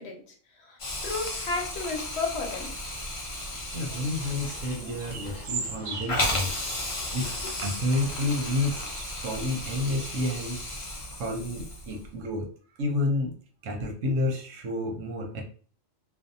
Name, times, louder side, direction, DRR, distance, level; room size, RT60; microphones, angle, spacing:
voice 1, 0.0-2.8, left 3 dB, 65° left, 2 dB, 0.9 m, -33 dB
Hiss, 0.8-12.1, left 1 dB, 45° left, 0.4 m, -34 dB
sound 1, 2.8-10.3, right 4 dB, 60° right, 0.6 m, -42 dB
sound 2, 3.7-8.9, left 3 dB, 85° left, 1.1 m, -47 dB
voice 2, 3.7-6.7 7.1-7.3 7.6-10.8 11.2-12.5 12.8-13.4 13.6-15.4, left 2 dB, 90° right, 2 dB, 1.1 m, -30 dB
2.6 x 2.1 x 2.6 m, 0.43 s
omnidirectional pair, 1.3 m